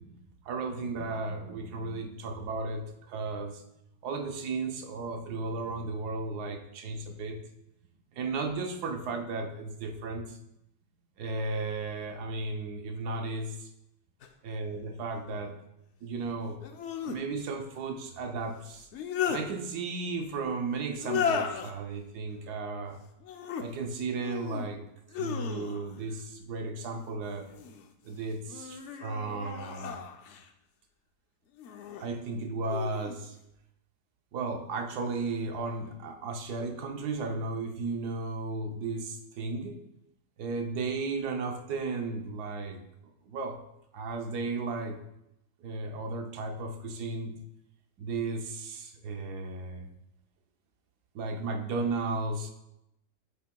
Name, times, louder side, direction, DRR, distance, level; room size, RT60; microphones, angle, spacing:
voice 1, 0.0-3.6 4.0-7.4 8.1-10.4 11.2-13.7 14.4-15.5 16.0-16.6 17.0-18.9 19.3-23.0 23.6-24.8 25.2-27.5 28.0-30.0 32.0-33.4 34.3-39.8 40.4-42.8 43.3-43.6 43.9-45.0 45.6-47.4 48.0-49.9 51.1-52.5, right 3 dB, 80° right, 4 dB, 1.3 m, -34 dB
sound 1, 14.2-14.3 16.6-17.2 18.7-19.4 21.0-21.7 23.2-23.7 24.2-24.7 25.1-26.0 27.2-27.9 28.5-30.5 31.6-32.1 32.6-33.2, left 7 dB, 65° left, 0.7 m, -35 dB
7.2 x 7.2 x 2.2 m, 0.84 s
omnidirectional pair, 1.7 m